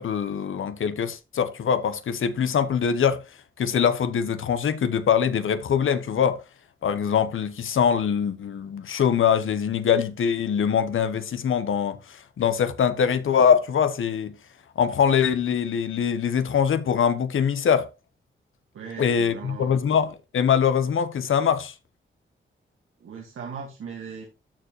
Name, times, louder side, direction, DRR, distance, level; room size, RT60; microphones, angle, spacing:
voice 1, 0.0-3.2 3.6-6.4 6.8-14.3 14.8-17.9 19.0-21.7, left 7 dB, 80° left, 1.0 m, -23 dB
voice 2, 18.7-19.8 23.0-24.3, right 6 dB, 85° right, 1.8 m, -38 dB
13.5 x 4.7 x 3.0 m
cardioid pair, 70°, 21 cm